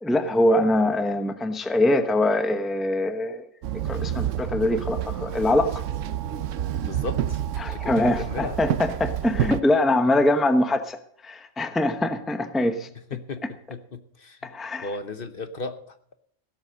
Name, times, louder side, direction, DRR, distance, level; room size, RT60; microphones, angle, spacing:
voice 1, 0.0-3.5 3.9-5.8 7.6-12.9 14.4-14.9, left 1 dB, ahead, 9 dB, 0.8 m, -23 dB
Walk footsteps / Chatter / Hiss, 3.6-9.6, right 10 dB, 80° right, 1.0 m, -29 dB
voice 2, 6.8-7.4 7.7-8.6 13.1-14.5 14.8-16.2, left 3 dB, 50° left, 10 dB, 1.1 m, -35 dB
16.5 x 8.0 x 6.3 m, 0.66 s
omnidirectional pair, 1.3 m